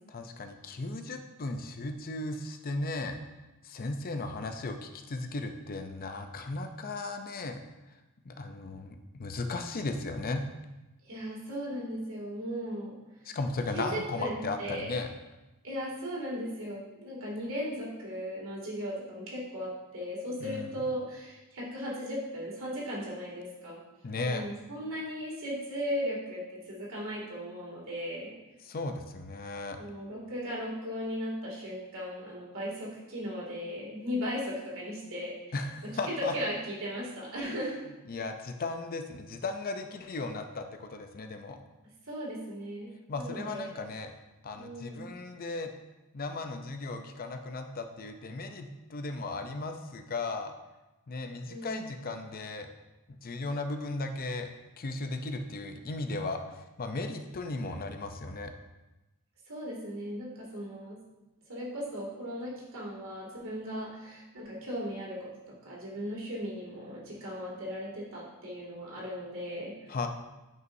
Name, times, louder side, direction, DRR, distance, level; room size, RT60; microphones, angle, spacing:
voice 1, 0.1-3.2 3.6-7.6 8.3-10.4 13.2-15.1 20.4-20.7 24.0-24.5 28.6-29.8 35.5-36.3 38.1-41.6 43.1-44.1 44.4-45.7 46.1-50.5 51.1-52.7 53.1-54.5 54.8-58.5 69.9-70.1, left 3 dB, 40° left, 6 dB, 0.5 m, -36 dB
voice 2, 11.0-13.0 13.7-14.9 15.6-23.8 24.2-28.3 29.8-35.3 35.8-37.8 42.1-43.7 44.6-45.1 51.5-51.9 59.5-61.0 61.5-69.9, equal, 65° right, -5 dB, 2.3 m, -37 dB
9.2 x 5.5 x 2.6 m, 1.0 s
head